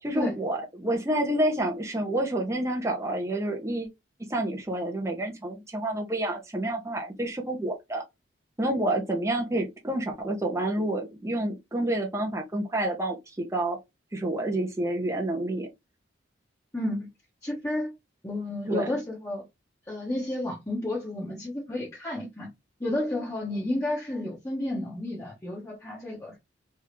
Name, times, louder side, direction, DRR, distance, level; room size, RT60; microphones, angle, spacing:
voice 1, 0.0-3.9 4.2-8.0 8.6-13.8 14.1-15.7 18.7-18.9, right 1 dB, 15° right, 0.9 m, -29 dB
voice 2, 16.7-17.1 17.4-17.9 18.2-19.4 19.9-22.5 22.8-26.4, left 1 dB, 15° left, 1.2 m, -31 dB
3.6 x 3.5 x 3.2 m
head